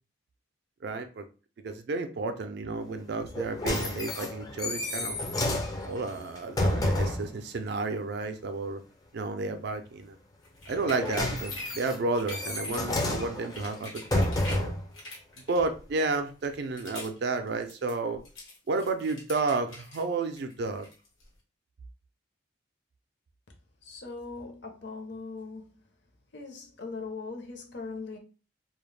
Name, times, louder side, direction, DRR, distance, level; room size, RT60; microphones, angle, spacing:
voice 1, 0.8-1.3 1.6-5.2 5.9-8.8 9.1-10.2 10.7-14.7 15.5-18.2 18.7-20.9, right 3 dB, 55° right, 0.3 m, -31 dB
sound 1, 3.2-7.3 10.7-14.9 15.6-15.7, left 1 dB, 20° left, 0.4 m, -30 dB
sound 2, 10.4-11.8 12.1-12.9 13.3-14.7 14.9-15.9 16.4-17.2 17.5-20.0 20.4-21.3, left 1 dB, 90° left, 1.2 m, -45 dB
voice 2, 23.8-25.7 26.3-28.2, left 4 dB, 60° left, 0.6 m, -40 dB
2.2 x 2.0 x 3.1 m
head